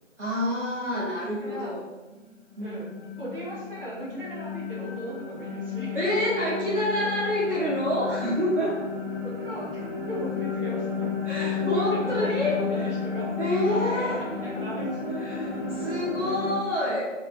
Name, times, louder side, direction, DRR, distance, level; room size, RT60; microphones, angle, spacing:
voice 1, 0.2-1.8 2.6-2.8 5.9-8.8 11.3-12.9 13.4-14.2 15.1-17.1, left 1 dB, 65° right, -8 dB, 1.0 m, -27 dB
voice 2, 1.3-1.8 2.6-2.9 3.2-6.2 9.2-11.1 11.4-13.3 13.7-15.0, equal, 45° right, -7 dB, 1.3 m, -37 dB
sound 1, 2.1-16.5, left 5 dB, ahead, 0.6 m, -32 dB
3.6 x 2.1 x 3.2 m, 1.2 s
figure-of-eight pair, 165°, 39 cm